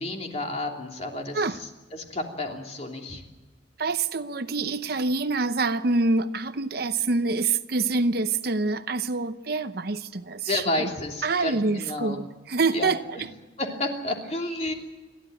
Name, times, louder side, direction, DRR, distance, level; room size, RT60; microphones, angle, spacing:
voice 1, 0.0-3.2 10.5-12.2 12.7-13.2 13.6-14.7, left 1 dB, 35° left, 3.0 m, -31 dB
voice 2, 3.8-10.9 11.2-13.3, right 3 dB, 55° right, 0.8 m, -26 dB
29.0 x 12.0 x 9.0 m
head